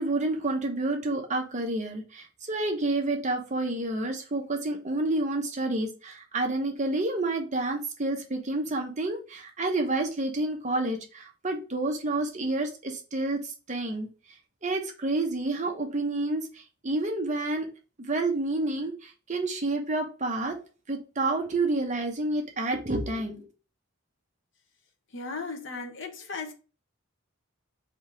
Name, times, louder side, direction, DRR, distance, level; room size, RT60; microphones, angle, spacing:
voice 1, 0.0-14.1 14.6-17.7 18.0-20.6 20.9-23.5, right 2 dB, 35° right, 0.8 m, -29 dB
voice 2, 25.1-26.5, left 4 dB, 60° left, 0.8 m, -36 dB
3.6 x 2.8 x 4.5 m
head